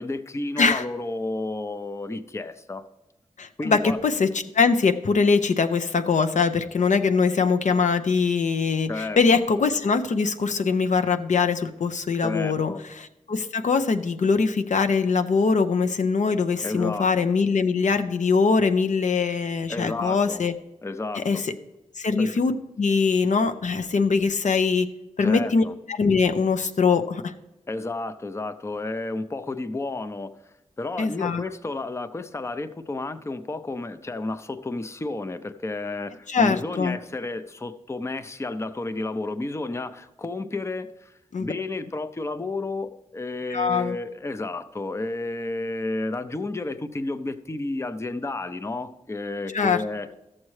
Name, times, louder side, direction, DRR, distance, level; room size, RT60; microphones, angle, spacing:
voice 1, 0.0-2.9 3.6-4.0 8.9-9.4 12.2-12.8 16.6-17.3 19.7-20.4 20.8-21.4 22.2-22.3 25.2-25.7 27.7-30.3 30.8-41.1 41.4-50.1, left 2 dB, 20° left, 11 dB, 0.5 m, -31 dB
voice 2, 3.4-4.3 4.5-12.7 13.0-20.5 21.2-21.4 22.0-22.5 22.8-24.9 25.2-27.3 31.0-31.4 36.3-37.0 41.3-41.5 43.5-44.0 49.5-49.8, left 5 dB, 70° left, 9 dB, 0.6 m, -22 dB
13.0 x 7.4 x 3.2 m, 0.93 s
wide cardioid pair, 95°, 13 cm